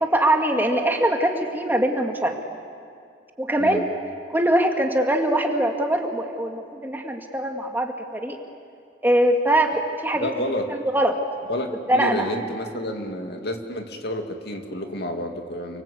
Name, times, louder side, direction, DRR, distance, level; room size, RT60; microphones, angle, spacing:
voice 1, 0.0-2.4 3.4-3.8 4.3-8.4 9.0-10.3 10.7-11.2 11.9-12.3, right 1 dB, 10° right, 3 dB, 2.1 m, -22 dB
voice 2, 10.2-10.7 11.5-15.8, left 1 dB, 65° left, 4 dB, 2.5 m, -30 dB
30.0 x 23.5 x 8.4 m, 2.3 s
head